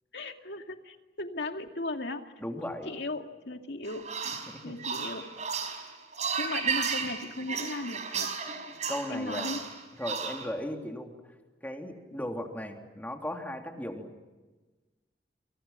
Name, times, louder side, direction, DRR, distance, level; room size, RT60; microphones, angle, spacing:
voice 1, 0.1-2.2 2.7-4.1 4.6-5.2 6.4-8.3 9.1-9.6, left 2 dB, 80° left, 5 dB, 2.4 m, -37 dB
voice 2, 2.4-2.9 4.5-4.8 8.9-9.5 10.0-11.1 11.6-14.1, left 1 dB, 10° left, 2 dB, 3.4 m, -36 dB
sound 1, 3.9-10.5, right 6 dB, 40° right, 5.1 m, -34 dB
29.0 x 28.5 x 5.9 m, 1.2 s
head